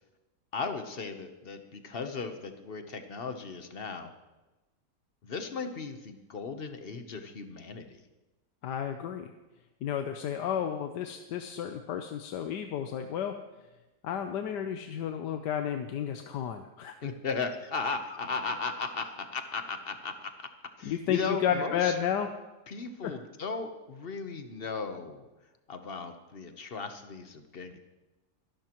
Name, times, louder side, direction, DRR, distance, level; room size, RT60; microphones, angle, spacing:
voice 1, 0.5-4.1 5.2-8.0 17.0-20.5 20.8-21.9 22.7-25.3 25.7-27.8, left 4 dB, 40° left, 7 dB, 1.0 m, -36 dB
voice 2, 8.6-9.3 9.8-13.3 14.0-16.9 20.8-22.3 23.0-23.1, left 9 dB, 80° left, 6 dB, 1.4 m, -32 dB
25.0 x 12.0 x 3.0 m, 1.1 s
omnidirectional pair, 1.8 m